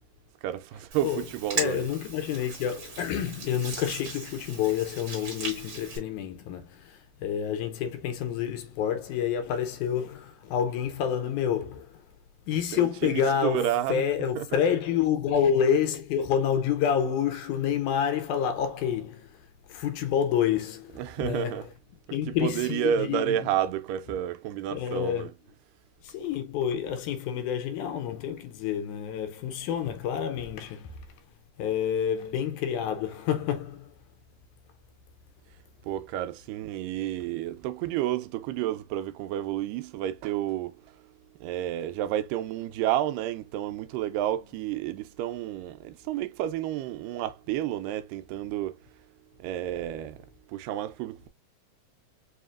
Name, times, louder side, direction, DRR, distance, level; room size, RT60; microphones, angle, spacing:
voice 1, 0.4-1.9 12.7-14.0 14.4-14.5 21.0-21.6 22.3-25.3 35.8-41.1 41.4-48.8 49.4-51.3, right 12 dB, 85° right, 2.2 m, -31 dB
Hands, 0.9-6.0, right 4 dB, 45° right, 2.2 m, -38 dB
voice 2, 1.6-12.1 12.5-21.7 22.1-23.4 24.7-25.3 26.0-31.1 31.6-34.0, left 8 dB, 80° left, 2.0 m, -28 dB
5.7 x 2.8 x 2.4 m
omnidirectional pair, 3.8 m